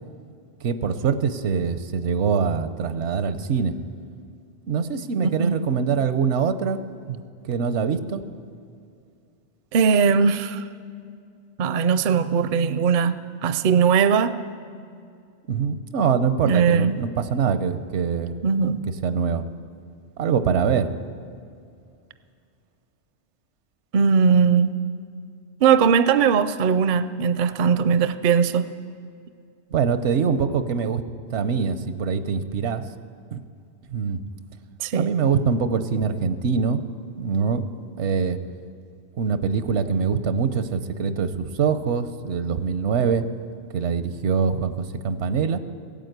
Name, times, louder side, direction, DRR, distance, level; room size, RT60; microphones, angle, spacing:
voice 1, 0.6-3.7 4.7-6.8 7.1-8.2 15.5-18.4 19.0-19.4 20.2-20.9 29.7-31.0 31.3-32.9 33.3-33.4 33.9-34.2 34.9-36.8 37.2-37.6 38.0-38.4 39.2-43.2 43.7-45.6, right 6 dB, 85° right, 11 dB, 1.0 m, -24 dB
voice 2, 9.7-10.6 11.6-14.4 16.5-17.0 18.4-18.8 23.9-24.7 25.6-28.7 34.8-35.1, right 6 dB, 55° right, 13 dB, 0.6 m, -19 dB
16.0 x 9.1 x 8.0 m, 2.4 s
omnidirectional pair, 1.2 m